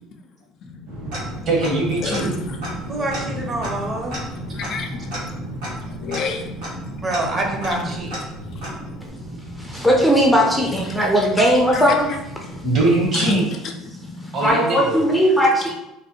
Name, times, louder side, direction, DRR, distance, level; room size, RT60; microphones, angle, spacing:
sound 1, 0.9-13.1, right 1 dB, 90° right, 1.1 m, -35 dB
Tick-tock, 1.1-1.9 2.1-2.2 2.6-9.1, equal, 75° right, 1.3 m, -35 dB
voice 1, 1.4-2.4 9.7-9.8 12.6-13.5 14.3-15.0, right 2 dB, 50° right, -1 dB, 1.2 m, -21 dB
voice 2, 2.9-4.1 7.0-8.2, right 2 dB, 30° right, 1 dB, 0.8 m, -26 dB
voice 3, 4.6-5.7 6.0-7.1 7.7-7.9 11.7-11.8 13.1-13.2 14.0-14.3, left 4 dB, 60° left, 3 dB, 0.4 m, -31 dB
voice 4, 9.6-12.2 14.4-15.7, equal, ahead, -1 dB, 0.6 m, -18 dB
3.2 x 2.2 x 2.9 m, 0.92 s
supercardioid pair, 80°, 0 cm